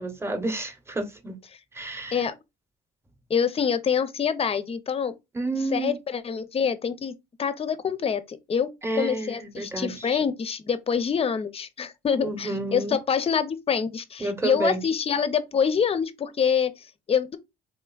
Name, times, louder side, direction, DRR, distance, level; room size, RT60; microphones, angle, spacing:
voice 1, 0.0-1.4 1.7-2.2 5.3-6.0 8.8-10.2 12.2-13.0 14.2-14.8, right 2 dB, 15° right, 0.8 m, -30 dB
voice 2, 3.3-5.1 5.7-7.1 7.4-17.4, left 7 dB, 30° left, 0.5 m, -26 dB
3.8 x 3.3 x 2.3 m
cardioid pair, 105°, 19 cm